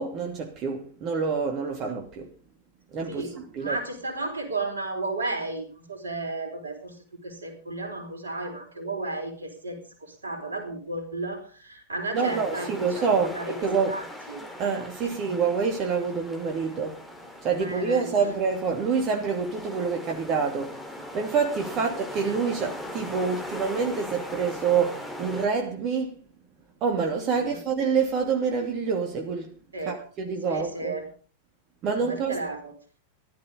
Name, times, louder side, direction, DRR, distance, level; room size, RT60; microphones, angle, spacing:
voice 1, 0.0-2.3 2.9-3.8 12.1-13.4 13.6-14.0 14.6-17.0 17.4-20.8 21.1-26.1 26.8-29.5 29.9-30.9 31.8-32.4, right 5 dB, 35° right, 2.7 m, -27 dB
voice 2, 3.1-7.0 7.2-14.4 15.0-15.4 17.6-18.2 21.7-21.9 27.3-27.6 29.7-30.0 30.5-31.1 32.0-32.7, right 2 dB, 75° right, 4.4 m, -34 dB
sound 1, 12.1-25.5, left 1 dB, 5° left, 4.4 m, -40 dB
15.0 x 12.5 x 5.3 m
figure-of-eight pair, 90°, 0 cm